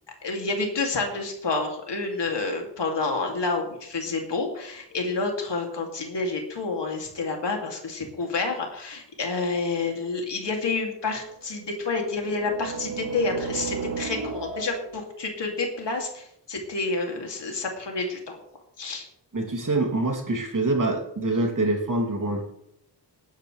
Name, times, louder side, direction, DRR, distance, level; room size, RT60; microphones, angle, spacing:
voice 1, 0.2-18.4 18.8-19.1, left 3 dB, 80° left, 1 dB, 2.9 m, -29 dB
sound 1, 10.4-10.5 11.6-15.1, right 5 dB, 70° right, 2.3 m, -34 dB
voice 2, 19.3-22.4, right 2 dB, 50° right, 1 dB, 3.0 m, -25 dB
19.5 x 10.5 x 3.4 m, 0.73 s
wide cardioid pair, 95°, 42 cm